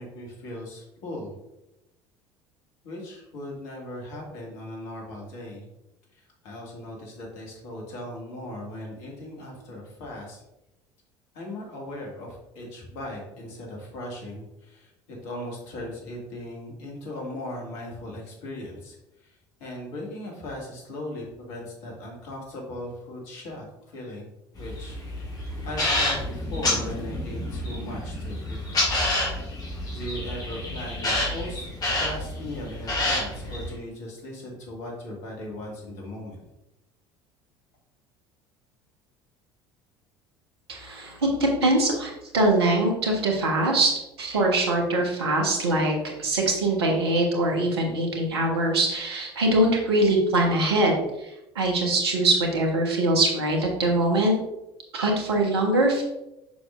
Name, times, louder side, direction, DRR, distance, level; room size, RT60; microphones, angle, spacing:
voice 1, 0.0-1.3 2.8-5.7 6.1-10.4 11.3-24.3 24.6-25.0 25.6-28.8 29.9-31.7 32.0-36.4, left 1 dB, 55° left, -1 dB, 2.2 m, -38 dB
sound 1, 24.6-33.7, left 1 dB, 30° left, 2.3 m, -29 dB
voice 2, 40.7-43.9 44.2-51.3 51.5-54.3 54.9-56.0, right 1 dB, 70° right, 1 dB, 1.4 m, -23 dB
6.9 x 6.2 x 2.6 m, 0.90 s
figure-of-eight pair, 65°, 13 cm